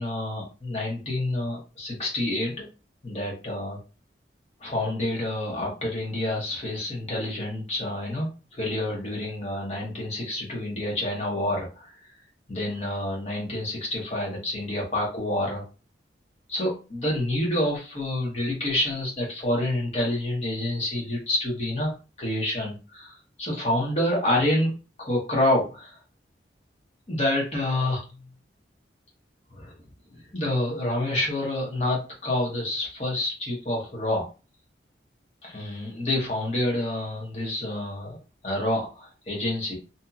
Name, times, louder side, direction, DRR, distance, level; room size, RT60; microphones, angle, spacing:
voice 1, 0.0-2.7 3.0-3.8 4.6-11.9 12.5-15.6 16.5-24.7 25.0-26.0 27.1-28.0 29.5-29.7 30.1-34.3 35.4-38.2 38.4-39.8, left 1 dB, 35° left, -2 dB, 1.2 m, -28 dB
2.7 x 2.7 x 2.4 m, 0.32 s
head